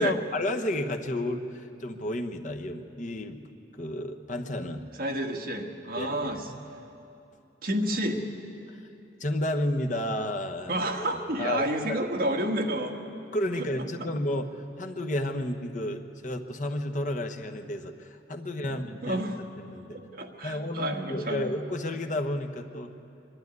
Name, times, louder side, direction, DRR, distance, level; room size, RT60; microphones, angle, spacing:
voice 1, 0.0-3.4 3.8-4.9 6.0-6.4 8.7-8.8 9.2-10.7 11.4-11.6 11.9-12.0 13.3-19.2 19.6-20.0 20.4-22.9, left 1 dB, 40° left, 4 dB, 1.1 m, -31 dB
voice 2, 5.0-6.5 7.6-8.3 10.7-13.0 13.6-13.9 18.4-19.4 19.9-21.5, right 1 dB, 50° right, 2 dB, 1.6 m, -30 dB
23.0 x 12.0 x 9.5 m, 2.8 s
head